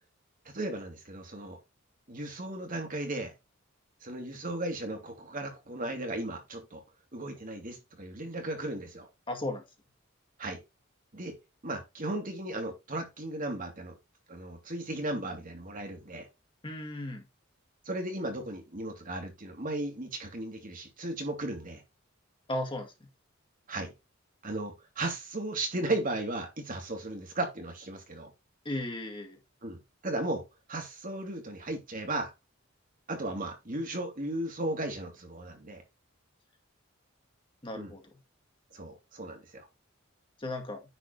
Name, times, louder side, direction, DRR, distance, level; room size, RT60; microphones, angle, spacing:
voice 1, 0.4-1.6 2.1-3.3 4.0-6.8 7.1-9.1 10.4-10.6 11.1-11.4 11.6-14.0 14.3-16.3 17.8-21.8 23.7-23.9 24.4-28.3 29.6-30.4 30.7-32.3 33.1-35.8 37.7-37.9 38.7-39.6, right 2 dB, 45° right, 2.6 m, -36 dB
voice 2, 9.3-9.6 16.6-17.2 22.5-22.9 28.7-29.4 37.6-38.0 40.4-40.8, left 1 dB, 25° left, 2.1 m, -35 dB
10.0 x 4.3 x 4.3 m
head